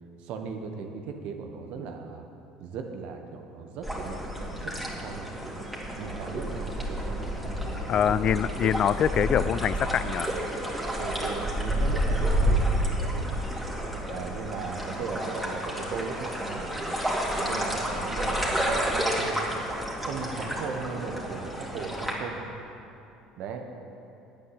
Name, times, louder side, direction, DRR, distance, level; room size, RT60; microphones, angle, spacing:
voice 1, 0.2-2.3 2.6-5.3 6.0-8.0 8.3-8.7 11.0-13.4 14.0-17.0 17.4-19.5 20.0-22.5 23.4-23.7, right 5 dB, 60° right, 5 dB, 1.3 m, -38 dB
sound 1, 3.8-22.1, right 1 dB, ahead, 2.9 m, -30 dB
voice 2, 7.9-10.3, left 9 dB, 45° left, 17 dB, 0.3 m, -24 dB
10.5 x 8.6 x 7.9 m, 2.8 s
hypercardioid pair, 60°, 2 cm